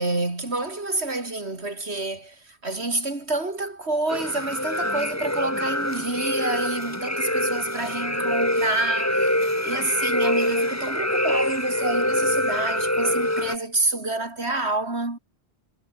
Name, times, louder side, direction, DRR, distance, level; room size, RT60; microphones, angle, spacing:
voice 1, 0.0-15.2, right 2 dB, 85° right, 4.3 m, -28 dB
sound 1, 4.1-13.5, left 1 dB, 15° left, 3.1 m, -25 dB
omnidirectional pair, 1.1 m